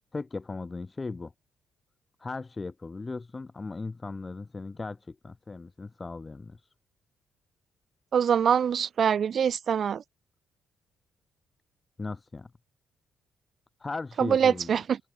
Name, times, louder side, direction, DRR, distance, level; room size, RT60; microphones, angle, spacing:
voice 1, 0.1-1.3 2.2-6.6 12.0-12.5 13.8-14.8, left 3 dB, 25° left, 4.8 m, -37 dB
voice 2, 8.1-10.0 14.2-14.8, right 7 dB, 55° right, 1.1 m, -24 dB
cardioid pair, 90°, 0 cm